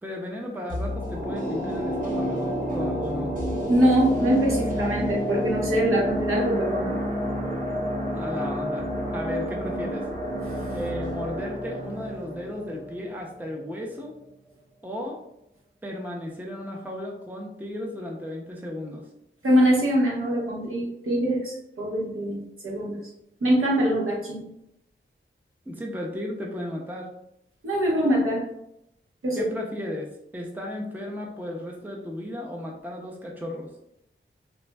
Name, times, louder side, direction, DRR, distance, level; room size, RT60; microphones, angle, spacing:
voice 1, 0.0-3.3 8.1-10.1 10.7-14.2 14.8-15.2 15.8-19.1 25.7-27.1 29.4-33.7, left 1 dB, 10° right, 0 dB, 0.5 m, -34 dB
sound 1, 0.7-13.8 14.1-14.2, equal, 40° right, 1.0 m, -29 dB
voice 2, 3.7-7.0 10.5-10.7 19.4-23.0 23.4-24.5 27.6-28.5 29.2-29.5, equal, 85° right, -4 dB, 1.0 m, -23 dB
4.2 x 2.5 x 2.2 m, 0.79 s
wide cardioid pair, 90°, 21 cm